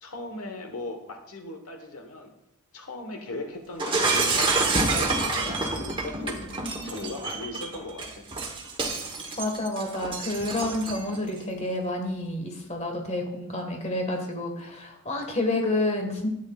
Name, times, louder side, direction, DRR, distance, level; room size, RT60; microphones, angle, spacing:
voice 1, 0.0-2.3 2.7-4.5 4.9-8.3, left 2 dB, 75° left, 5 dB, 1.2 m, -38 dB
Shatter, 3.8-11.2, right 3 dB, 20° right, 1.1 m, -28 dB
voice 2, 9.4-16.3, left 2 dB, 30° left, 3 dB, 1.5 m, -29 dB
12.0 x 8.8 x 2.4 m, 0.84 s
head